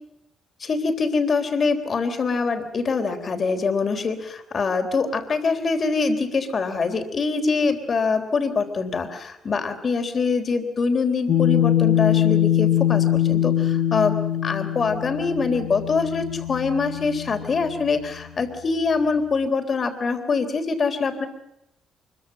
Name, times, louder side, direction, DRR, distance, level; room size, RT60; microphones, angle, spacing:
voice 1, 0.6-14.2 14.4-21.3, left 4 dB, 45° left, 6 dB, 3.7 m, -24 dB
sound 1, 11.3-18.0, left 11 dB, 60° left, 1.8 m, -22 dB
24.5 x 23.0 x 7.5 m, 0.82 s
cardioid pair, 90°, 0 cm